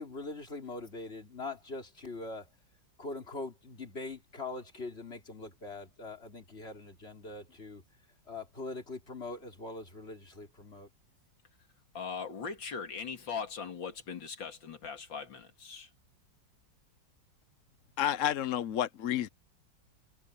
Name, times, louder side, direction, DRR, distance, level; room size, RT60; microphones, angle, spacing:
voice 1, 0.0-2.5 3.0-7.8 8.3-10.9, left 3 dB, 30° left, 4.1 m, -42 dB
voice 2, 11.9-15.9, left 6 dB, 80° left, 2.9 m, -40 dB
voice 3, 18.0-19.3, left 10 dB, 55° left, 0.9 m, -30 dB
omnidirectional pair, 2.0 m